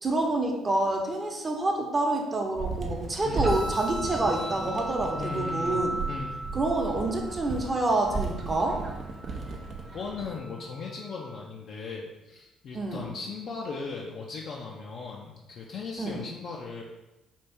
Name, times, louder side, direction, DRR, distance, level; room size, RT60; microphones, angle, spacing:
voice 1, 0.0-6.0 6.5-8.8 12.7-13.0 16.0-16.2, right 2 dB, 30° right, 1 dB, 0.8 m, -27 dB
sound 1, 2.6-10.3, right 4 dB, 50° right, 0.5 m, -36 dB
sound 2, 3.4-11.4, right 1 dB, 5° right, 0.8 m, -38 dB
voice 2, 5.1-6.4 9.8-16.8, left 4 dB, 55° left, -2 dB, 0.4 m, -38 dB
4.3 x 2.5 x 3.5 m, 1.0 s
hypercardioid pair, 50°, 0 cm